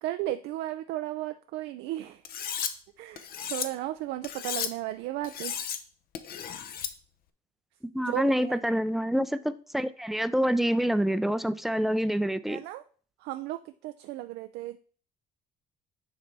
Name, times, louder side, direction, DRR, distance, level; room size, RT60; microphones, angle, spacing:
voice 1, 0.0-2.2 3.0-5.5 8.0-8.6 12.5-12.8 13.2-14.8, right 15 dB, 85° right, 9 dB, 0.4 m, -35 dB
Cutlery silverware, 2.2-2.7 3.2-3.7 4.2-4.7 5.2-5.8 6.1-6.9, left 8 dB, 60° left, 0.7 m, -34 dB
voice 2, 7.9-12.6, equal, ahead, 13 dB, 0.4 m, -27 dB
9.3 x 3.3 x 4.1 m, 0.42 s
cardioid pair, 110°, 17 cm